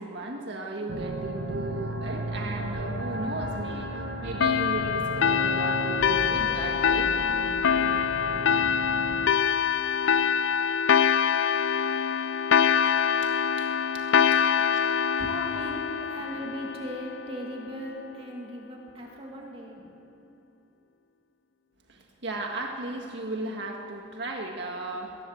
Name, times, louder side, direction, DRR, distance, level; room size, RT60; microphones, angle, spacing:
voice 1, 0.0-7.1 13.2-14.1 14.3-14.4 15.2-15.3 21.9-25.2, right 2 dB, 65° right, 1 dB, 1.8 m, -36 dB
sound 1, 0.9-9.3, right 2 dB, 80° right, 1.4 m, -35 dB
sound 2, 4.4-17.5, left 7 dB, 75° left, 0.5 m, -24 dB
voice 2, 14.2-14.7 15.2-19.9, equal, 30° right, -1 dB, 2.3 m, -39 dB
22.0 x 18.5 x 7.8 m, 2.7 s
head